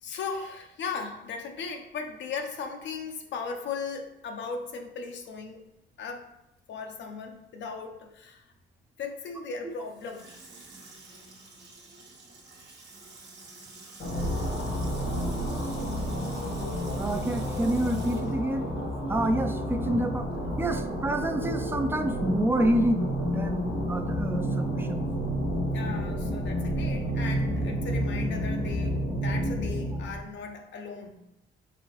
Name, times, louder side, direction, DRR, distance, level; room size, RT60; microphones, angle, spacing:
voice 1, 0.0-5.6 6.0-6.3 6.7-8.4 9.0-10.3 11.1-11.2 25.7-31.2, left 5 dB, 65° left, 4 dB, 0.5 m, -37 dB
Water tap faucet / Sink (filling or washing), 9.7-19.4 19.7-19.8, right 3 dB, 60° right, 1.1 m, -49 dB
sound 1, 14.0-30.2, equal, 80° left, 1.2 m, -30 dB
voice 2, 17.0-18.7 19.1-20.3 20.6-25.0, right 1 dB, 10° right, 7 dB, 0.4 m, -28 dB
4.0 x 3.6 x 3.0 m, 0.85 s
cardioid pair, 90°, 20 cm